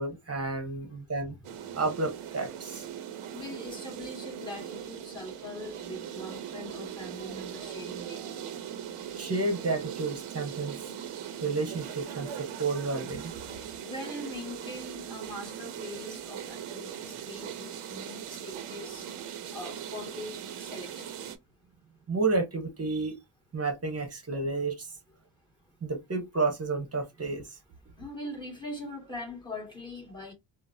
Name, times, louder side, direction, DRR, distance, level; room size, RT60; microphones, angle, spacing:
voice 1, 0.0-1.4 1.7-2.9 9.1-10.8 11.4-13.3 22.1-23.2 23.5-24.9 25.8-27.6, right 3 dB, 30° right, 1.2 m, -31 dB
sound 1, 1.4-21.4, right 9 dB, 85° right, 0.8 m, -40 dB
voice 2, 3.3-8.3 13.8-19.1 19.5-21.2 28.0-30.3, left 1 dB, 10° left, 2.0 m, -42 dB
3.8 x 2.2 x 2.6 m
cardioid pair, 110°, 49 cm